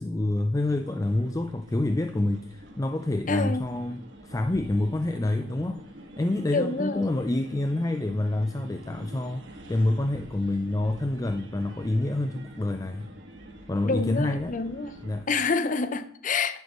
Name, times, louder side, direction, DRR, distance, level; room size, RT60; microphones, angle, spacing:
voice 1, 0.0-5.8 6.2-13.1 13.7-14.5 15.0-15.3, left 2 dB, 15° left, 0.4 m, -27 dB
sound 1, 0.5-15.2, right 1 dB, 65° right, 1.9 m, -47 dB
voice 2, 3.3-3.6 6.5-7.0 13.8-15.0 15.3-16.6, left 4 dB, 40° left, 0.7 m, -27 dB
11.0 x 10.5 x 3.0 m
head